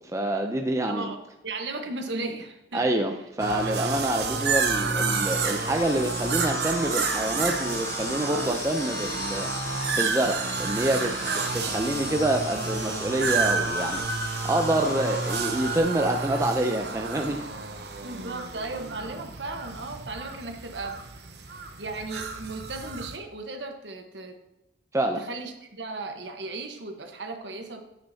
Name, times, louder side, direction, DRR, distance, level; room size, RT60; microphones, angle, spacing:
voice 1, 0.0-1.1 2.7-11.1 11.5-14.0 14.4-17.5 24.9-25.2, right 1 dB, 15° right, 4 dB, 0.5 m, -27 dB
voice 2, 0.9-2.9 11.3-11.6 18.0-21.0 21.8-24.4 25.2-27.9, right 3 dB, 80° right, 5 dB, 1.2 m, -36 dB
sound 1, 3.4-23.2, right 4 dB, 65° right, 0.9 m, -30 dB
sound 2, 4.2-15.8, left 2 dB, 15° left, 1.2 m, -38 dB
9.9 x 9.0 x 2.8 m, 0.94 s
head